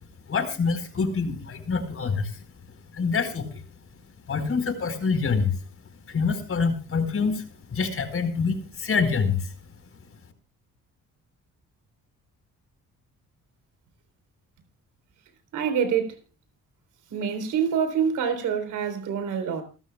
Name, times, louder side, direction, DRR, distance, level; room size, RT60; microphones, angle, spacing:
voice 1, 0.3-2.4 2.9-3.6 4.3-5.6 6.1-9.5, left 5 dB, 45° left, 4.5 m, -26 dB
voice 2, 15.5-16.1 17.1-19.6, right 7 dB, 85° right, 3.9 m, -26 dB
28.5 x 12.5 x 2.3 m
cardioid pair, 90°, 30 cm